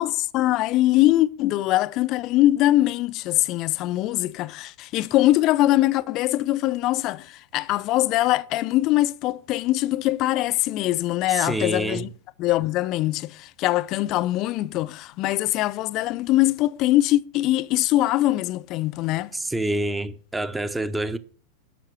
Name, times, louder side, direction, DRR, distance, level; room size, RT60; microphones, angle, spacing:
voice 1, 0.0-12.1 12.4-19.3, left 16 dB, 40° left, 0.6 m, -22 dB
voice 2, 11.3-12.0 19.3-21.2, right 1 dB, 10° right, 0.9 m, -27 dB
12.0 x 6.6 x 6.3 m
figure-of-eight pair, 90°, 0 cm